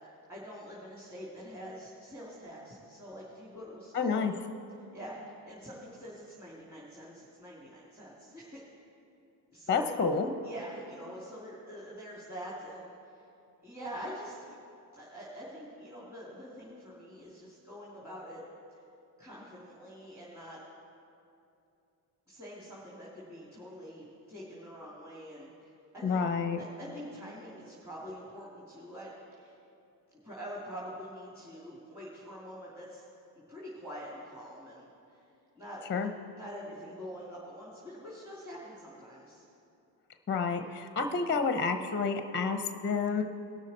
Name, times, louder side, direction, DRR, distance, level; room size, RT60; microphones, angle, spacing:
voice 1, 0.0-4.3 4.9-8.8 9.5-10.0 10.4-13.2 13.6-14.6 14.9-18.4 18.7-18.8 19.2-20.6 22.3-26.2 26.6-29.5 30.2-33.0 33.5-35.2 35.5-36.1 36.3-39.4, equal, 5° right, -7 dB, 2.7 m, -45 dB
voice 2, 3.9-4.3 9.7-10.3 26.0-26.6 35.9-36.1 40.3-43.2, left 5 dB, 25° left, 7 dB, 0.7 m, -29 dB
18.5 x 6.4 x 4.3 m, 2.7 s
hypercardioid pair, 65°, 49 cm